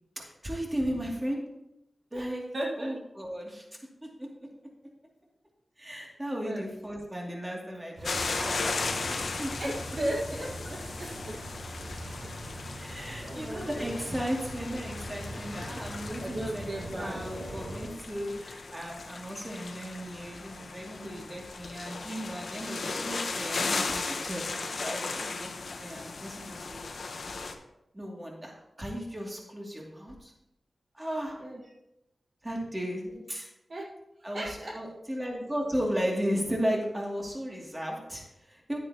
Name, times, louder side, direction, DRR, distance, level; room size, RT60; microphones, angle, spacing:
voice 1, 0.2-1.4 2.1-2.4 2.8-3.6 4.0-4.5 5.8-8.6 8.9-9.5 12.7-16.7 16.9-24.4 24.8-26.8 27.9-30.3 30.9-31.4 32.4-33.5 34.2-38.8, equal, 20° right, -1 dB, 2.4 m, -35 dB
voice 2, 2.5-2.9 6.4-6.6 9.6-11.4 13.3-14.0 16.2-17.3 31.4-31.6 33.1-33.2 33.7-33.9 34.2-34.8, right 1 dB, 60° right, -2 dB, 1.6 m, -36 dB
sound 1, 8.0-27.5, left 3 dB, 75° left, 0.9 m, -37 dB
sound 2, 8.0-17.9, right 1 dB, 75° right, 3.5 m, -41 dB
10.5 x 9.2 x 2.9 m, 0.86 s
wide cardioid pair, 65°, 0 cm